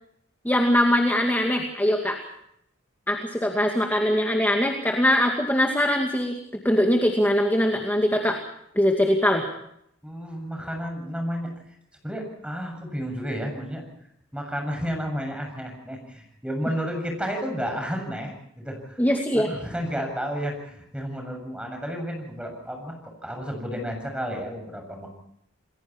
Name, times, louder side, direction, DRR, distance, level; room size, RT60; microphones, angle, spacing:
voice 1, 0.4-2.2 3.1-6.3 6.6-8.4 8.8-9.5 19.0-19.5, left 1 dB, 10° left, 2 dB, 2.4 m, -22 dB
voice 2, 10.0-11.5 12.0-13.9 14.3-19.0 19.3-23.0 23.2-25.1, equal, 5° right, 3 dB, 7.4 m, -32 dB
30.0 x 21.5 x 4.6 m, 0.73 s
head